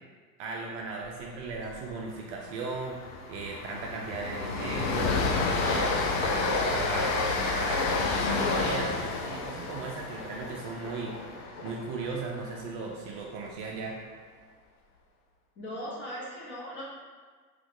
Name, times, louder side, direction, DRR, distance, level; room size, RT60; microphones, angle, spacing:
voice 1, 0.4-3.0 3.3-5.1 5.6-8.9 9.2-11.1 11.6-14.0, right 4 dB, 45° right, 0 dB, 0.5 m, -37 dB
Train, 1.5-1.8 2.0-2.2 2.6-12.7, left 3 dB, 45° left, 0.5 m, -30 dB
voice 2, 15.6-16.8, equal, 25° left, -5 dB, 1.0 m, -38 dB
3.1 x 2.4 x 3.5 m, 1.5 s
hypercardioid pair, 100°, 50 cm